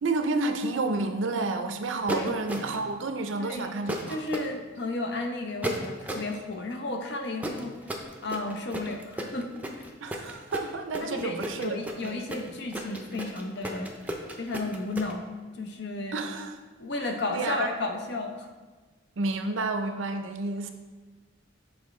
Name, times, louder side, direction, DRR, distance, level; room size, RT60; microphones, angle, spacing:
voice 1, 0.0-4.2 10.0-12.2 16.1-16.6 17.0-17.7 19.2-20.7, right 3 dB, 85° right, 6 dB, 0.5 m, -30 dB
sound 1, 2.1-2.9 3.9-4.5 5.6-6.3 7.4-15.1, right 1 dB, 10° right, 0.5 m, -34 dB
voice 2, 3.4-3.7 4.1-7.7 8.2-9.5 9.7-9.9 11.0-13.9 14.4-15.2 15.5-16.2 16.8-18.5, left 2 dB, 65° left, 3 dB, 0.7 m, -33 dB
7.2 x 4.3 x 3.2 m, 1.3 s
head